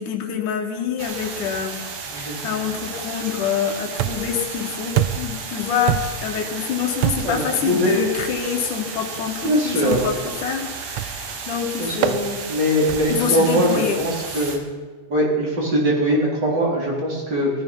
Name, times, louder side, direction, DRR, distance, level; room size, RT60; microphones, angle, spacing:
voice 1, 0.0-1.8 2.1-12.4 13.1-14.0 14.3-14.5, left 7 dB, 85° left, 3 dB, 3.2 m, -26 dB
sound 1, 1.0-14.6, right 5 dB, 60° right, 2.8 m, -33 dB
sound 2, 4.0-4.4 5.0-5.4 5.9-6.3 7.0-7.4 8.2-8.4 9.9-10.3 11.0-11.3 12.0-12.2 12.9-13.2, right 12 dB, 85° right, 1.2 m, -25 dB
voice 2, 7.2-8.0 9.4-10.0 11.8-12.1 12.5-14.6 15.1-17.5, equal, 35° right, -3 dB, 4.3 m, -21 dB
17.0 x 14.5 x 5.5 m, 1.5 s
omnidirectional pair, 3.5 m